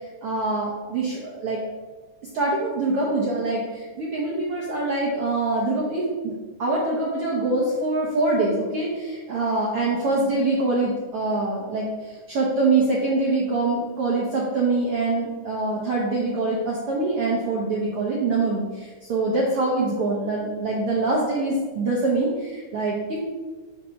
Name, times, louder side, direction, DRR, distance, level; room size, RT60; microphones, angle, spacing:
voice 1, 0.2-1.6 2.3-6.3 6.6-23.2, right 2 dB, 70° right, -4 dB, 1.3 m, -24 dB
5.7 x 3.2 x 5.6 m, 1.3 s
omnidirectional pair, 3.6 m